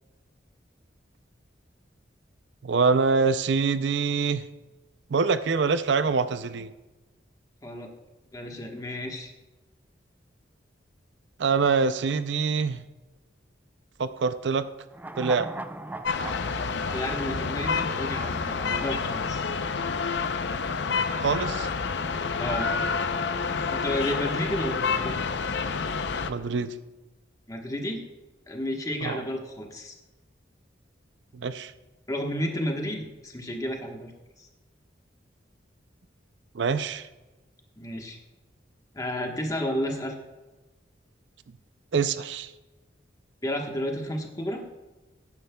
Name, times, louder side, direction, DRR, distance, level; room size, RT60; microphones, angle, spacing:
voice 1, 2.6-4.5 5.1-6.7 11.4-12.8 14.0-14.7 15.2-15.5 21.2-21.7 26.3-26.7 29.0-29.2 31.3-31.7 36.5-37.1 41.9-42.5, right 5 dB, 70° right, 13 dB, 0.5 m, -25 dB
voice 2, 7.6-7.9 8.3-9.3 16.9-19.5 22.4-22.7 23.7-25.2 27.5-28.0 28.5-29.9 32.1-34.1 34.4-34.5 37.8-38.2 38.9-40.1 43.4-44.7, equal, 20° left, 2 dB, 1.3 m, -32 dB
sound 1, 14.9-18.3 18.6-18.7, right 1 dB, 10° right, 0.3 m, -39 dB
sound 2, 16.0-26.3, left 5 dB, 70° left, 0.6 m, -28 dB
18.0 x 9.7 x 2.3 m, 1.1 s
head